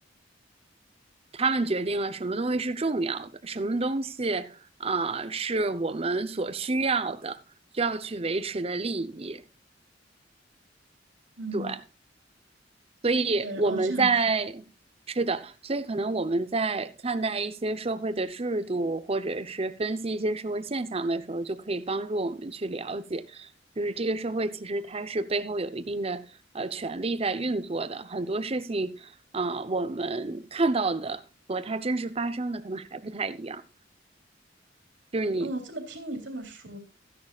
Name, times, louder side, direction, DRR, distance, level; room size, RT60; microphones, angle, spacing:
voice 1, 1.3-7.4 7.7-9.4 11.5-11.8 13.0-14.7 15.1-23.5 23.8-33.6 35.1-35.5, right 3 dB, 30° right, 0.8 m, -29 dB
voice 2, 11.4-11.7 13.4-14.1 35.4-36.8, right 1 dB, 70° right, 3.5 m, -35 dB
15.5 x 10.5 x 2.4 m
head